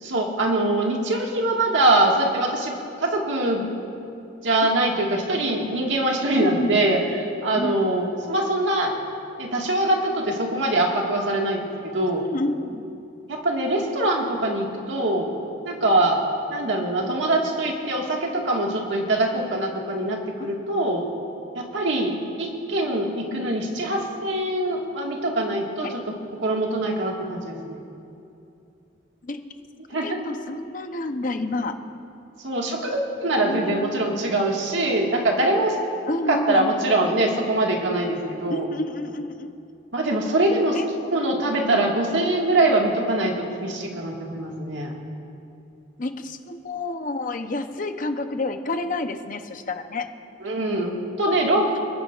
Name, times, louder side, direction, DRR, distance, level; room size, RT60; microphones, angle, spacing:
voice 1, 0.0-3.7 4.4-8.9 9.4-12.3 13.3-15.3 15.7-16.2 16.5-21.1 21.5-26.1 26.4-27.8 29.9-30.2 32.4-35.8 36.3-38.7 39.9-40.8 41.1-44.9 50.4-51.7, right 1 dB, 80° right, 0 dB, 1.8 m, -23 dB
voice 2, 4.9-5.4 6.4-6.8 7.5-8.0 12.3-12.9 25.8-25.9 29.2-29.4 30.0-31.8 33.4-34.3 36.1-36.8 38.5-39.5 40.7-41.2 46.0-50.1, left 2 dB, 45° left, 7 dB, 0.8 m, -29 dB
29.0 x 10.5 x 2.5 m, 2.7 s
head